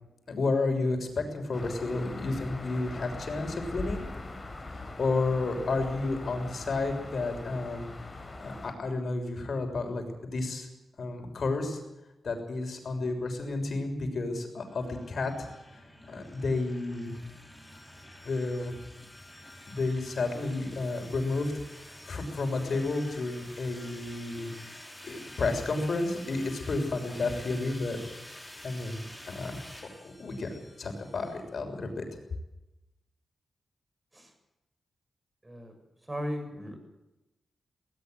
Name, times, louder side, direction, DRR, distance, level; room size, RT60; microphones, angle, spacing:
voice 1, 0.3-4.1 4.7-7.9 8.4-10.7 11.0-11.8 12.2-17.1 18.2-18.8 19.7-21.5 22.1-24.5 25.0-28.0 28.6-29.0 29.3-29.6 30.0-32.0, left 3 dB, 60° left, 5 dB, 6.5 m, -31 dB
sound 1, 1.5-8.7, left 2 dB, 25° left, 5.4 m, -41 dB
sound 2, 14.7-31.5, left 1 dB, 5° left, 6.3 m, -49 dB
voice 2, 36.1-36.8, equal, 20° right, 6 dB, 7.2 m, -36 dB
20.0 x 20.0 x 8.0 m, 0.98 s
cardioid pair, 90°, 0 cm